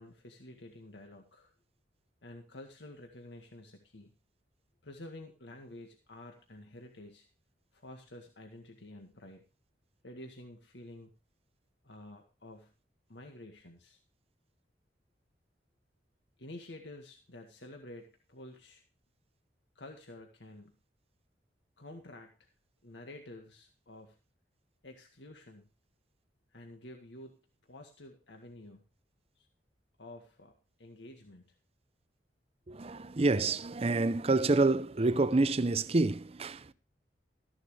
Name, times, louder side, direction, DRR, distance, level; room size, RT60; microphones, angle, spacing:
voice 1, 0.0-1.5 2.2-4.1 4.8-7.3 7.7-9.4 10.0-11.1 11.8-12.7 13.1-14.0 16.4-18.8 19.8-20.8 21.8-22.5 22.8-24.2 24.8-25.7 26.5-27.3 27.6-28.8 29.4-29.5 30.0-30.5 30.8-31.6, left 1 dB, 90° left, 1.8 m, -50 dB
voice 2, 32.7-36.7, right 3 dB, 35° right, 0.6 m, -28 dB
14.5 x 10.5 x 3.2 m
head